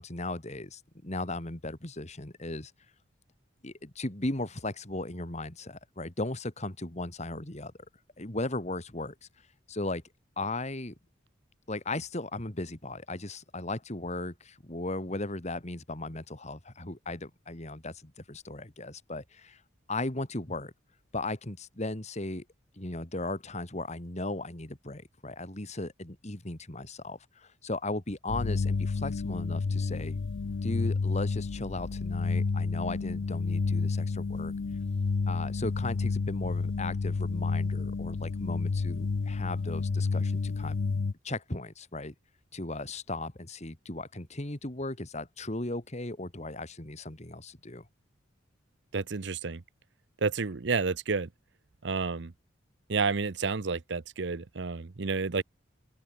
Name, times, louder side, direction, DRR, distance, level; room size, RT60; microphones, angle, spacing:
voice 1, 0.0-2.7 3.6-7.7 8.2-9.1 9.7-10.0 10.4-10.9 11.7-19.6 19.9-20.7 21.1-22.4 22.8-30.2 30.6-34.5 35.3-40.8 41.2-42.1 42.5-47.8, left 2 dB, 35° left, 2.3 m, -36 dB
sound 1, 28.3-41.1, left 4 dB, 75° left, 0.5 m, -30 dB
voice 2, 48.9-49.6 50.2-51.3 51.8-52.3 52.9-55.4, right 4 dB, 65° right, 0.7 m, -30 dB
open air
head